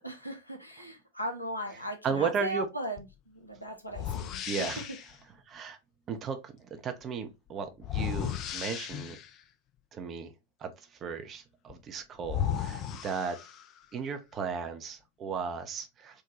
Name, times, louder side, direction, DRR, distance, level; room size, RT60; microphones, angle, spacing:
voice 1, 0.0-4.8, equal, 85° left, 0.7 m, -38 dB
voice 2, 2.0-2.7 4.5-4.8 5.5-5.8 6.1-9.2 9.9-10.3 10.6-10.7 11.0-13.4 13.9-16.2, right 6 dB, 25° right, 0.6 m, -35 dB
sound 1, 3.0-3.1 3.9-5.2 7.8-9.4 11.7-11.8 12.2-13.8, left 9 dB, 35° left, 0.4 m, -35 dB
3.6 x 2.2 x 2.8 m
figure-of-eight pair, 90°, 0 cm